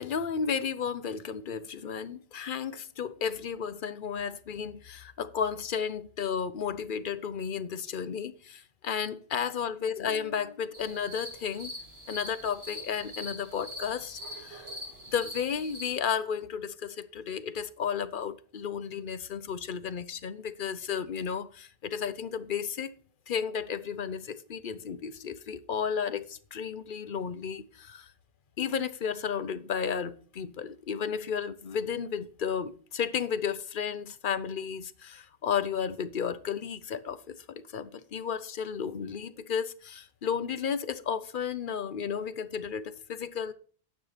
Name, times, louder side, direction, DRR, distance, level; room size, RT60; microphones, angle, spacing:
voice 1, 0.0-11.7 12.1-14.7 15.1-22.9 23.3-28.1 28.6-43.5, left 7 dB, 60° left, 0.8 m, -33 dB
sound 1, 10.7-15.9, left 1 dB, 75° right, 5.0 m, -43 dB
9.6 x 7.5 x 4.1 m
omnidirectional pair, 1.0 m